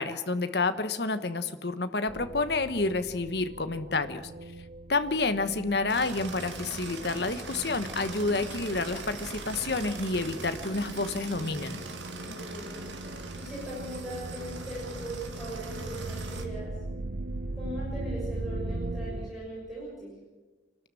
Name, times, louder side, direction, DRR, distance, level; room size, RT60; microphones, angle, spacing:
voice 1, 0.0-4.3 4.9-11.8, left 3 dB, 60° left, 11 dB, 1.2 m, -29 dB
sound 1, 2.1-19.3, right 2 dB, 50° right, 0.9 m, -40 dB
sound 2, 5.9-16.4, right 2 dB, 85° right, 2.5 m, -40 dB
voice 2, 12.2-12.8 13.4-16.7 17.5-20.1, right 1 dB, ahead, -7 dB, 6.7 m, -39 dB
27.0 x 12.5 x 7.7 m, 1.2 s
head